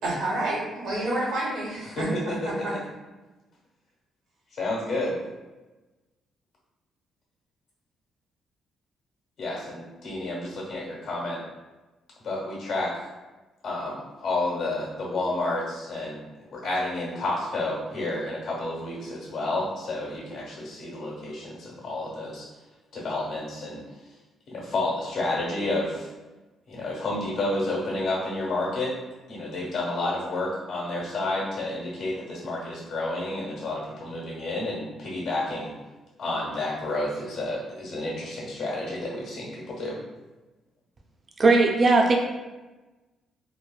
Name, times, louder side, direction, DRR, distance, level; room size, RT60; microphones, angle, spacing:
voice 1, 0.0-2.1 2.4-2.7, right 1 dB, 85° right, -5 dB, 1.1 m, -29 dB
voice 2, 2.0-2.7 4.5-5.2 9.4-11.4 12.2-13.1 13.6-16.2 16.5-22.5 22.9-23.8 24.5-26.1 26.7-28.9 29.3-35.7 36.2-40.0, left 2 dB, 70° left, -3 dB, 1.1 m, -30 dB
voice 3, 41.4-42.2, right 3 dB, 40° right, 2 dB, 0.4 m, -18 dB
3.0 x 2.1 x 2.3 m, 1.2 s
cardioid pair, 90°, 0 cm